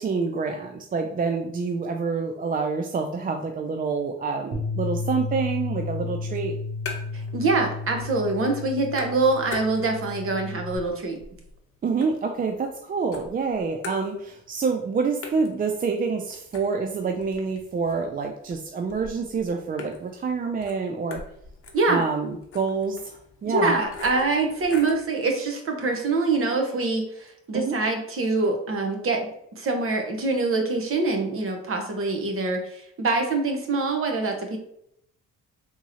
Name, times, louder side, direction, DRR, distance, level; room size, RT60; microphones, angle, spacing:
voice 1, 0.0-6.6 11.8-21.2 21.9-23.8 27.5-27.8, right 4 dB, 30° right, 4 dB, 0.4 m, -27 dB
Bass guitar, 4.5-10.8, left 3 dB, 75° right, 0.9 m, -33 dB
sound 1, 6.3-7.3 7.6-8.3 8.6-10.2 10.6-12.8 13.1-14.6 14.8-14.9 15.2-25.1, left 4 dB, 45° left, 0.8 m, -42 dB
voice 2, 7.1-11.2 21.7-22.0 23.4-29.3 29.6-34.6, right 3 dB, 45° right, 3 dB, 0.9 m, -25 dB
3.6 x 3.0 x 2.7 m, 0.72 s
cardioid pair, 90°, 30 cm